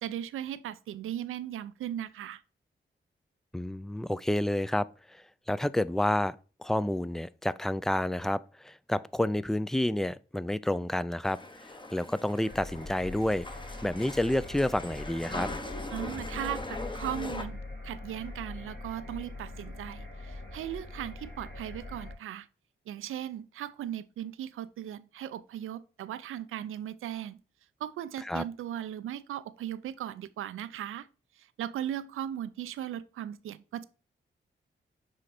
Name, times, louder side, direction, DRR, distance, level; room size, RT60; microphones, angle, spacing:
voice 1, 0.0-2.4 15.9-22.5 22.9-27.4 27.8-31.1 31.4-33.8, right 11 dB, 85° right, 0.4 m, -38 dB
voice 2, 3.5-11.4 11.9-13.4 13.8-15.5 28.2-28.4, left 1 dB, ahead, 0.3 m, -29 dB
sound 1, 11.2-17.4, left 2 dB, 25° left, 1.0 m, -41 dB
sound 2, 12.4-22.1, left 2 dB, 60° left, 3.1 m, -43 dB
7.5 x 3.2 x 4.2 m
cardioid pair, 50°, 21 cm